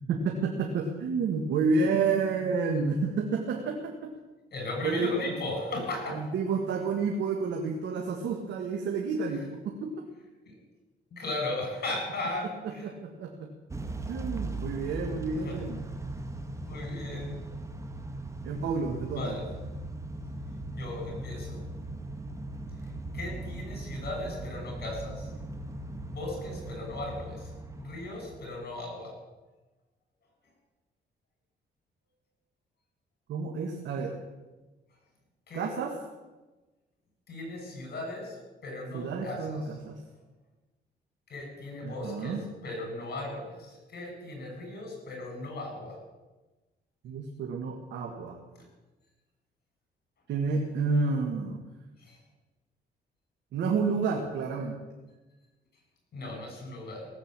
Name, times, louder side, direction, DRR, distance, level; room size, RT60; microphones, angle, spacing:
voice 1, 0.1-4.1 4.8-5.3 6.1-9.9 12.6-13.5 14.1-15.8 18.4-19.4 33.3-34.2 35.5-36.0 38.9-40.0 41.8-42.4 47.0-48.4 50.3-51.6 53.5-54.8, right 4 dB, 85° right, 2 dB, 1.8 m, -30 dB
voice 2, 4.5-6.2 10.5-10.6 11.1-12.9 15.4-15.6 16.6-17.4 19.1-19.4 20.7-21.6 23.1-25.3 26.1-27.5 27.8-29.1 35.5-35.7 37.3-38.4 38.6-39.6 41.3-42.4 42.6-46.0 52.0-52.2 56.1-57.1, left 2 dB, 60° left, 1 dB, 7.2 m, -37 dB
Motor vehicle (road) / Engine starting / Accelerating revving vroom, 13.7-28.7, right 2 dB, 15° right, 1.7 m, -39 dB
17.5 x 8.0 x 8.9 m, 1.2 s
cardioid pair, 95°, 18 cm